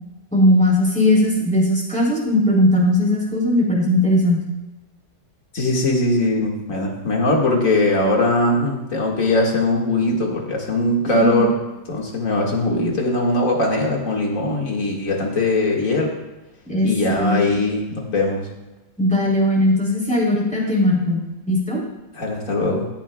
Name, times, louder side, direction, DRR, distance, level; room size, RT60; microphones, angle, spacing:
voice 1, 0.3-4.4 11.1-11.4 16.7-17.4 19.0-21.2 21.5-21.8, left 1 dB, 5° left, -4 dB, 3.3 m, -18 dB
voice 2, 5.5-11.6 11.9-16.1 16.8-18.5 22.1-22.9, left 2 dB, 50° left, -1 dB, 2.2 m, -20 dB
16.5 x 10.5 x 2.3 m, 1.1 s
omnidirectional pair, 1.9 m